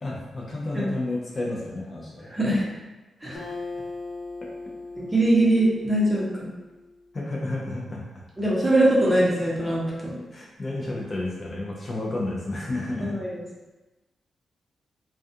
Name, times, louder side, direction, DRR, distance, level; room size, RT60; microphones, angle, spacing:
voice 1, 0.0-2.3 3.3-3.4 7.1-8.2 10.3-13.2, left 2 dB, 40° left, -3 dB, 0.4 m, -31 dB
voice 2, 2.3-2.6 3.2-3.4 5.0-6.5 8.4-10.1 13.0-13.4, right 1 dB, 15° right, -6 dB, 0.8 m, -22 dB
Acoustic guitar, 3.3-6.9, left 3 dB, 70° left, 1.0 m, -39 dB
2.3 x 2.3 x 2.6 m, 1.1 s
cardioid pair, 95°, 0 cm